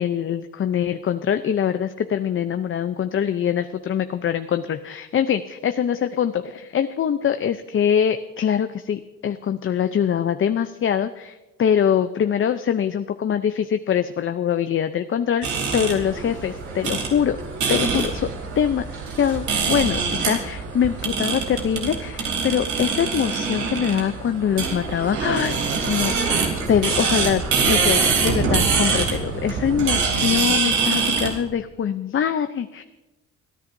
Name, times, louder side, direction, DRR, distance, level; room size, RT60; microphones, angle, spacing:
voice 1, 0.0-15.5 15.7-17.4 17.7-18.3 18.6-25.6 25.9-26.1 26.7-32.8, left 8 dB, 45° left, 9 dB, 0.6 m, -23 dB
sound 1, 15.4-31.4, right 5 dB, 80° right, 3.0 m, -24 dB
29.5 x 10.0 x 2.7 m, 1.1 s
cardioid pair, 90°, 30 cm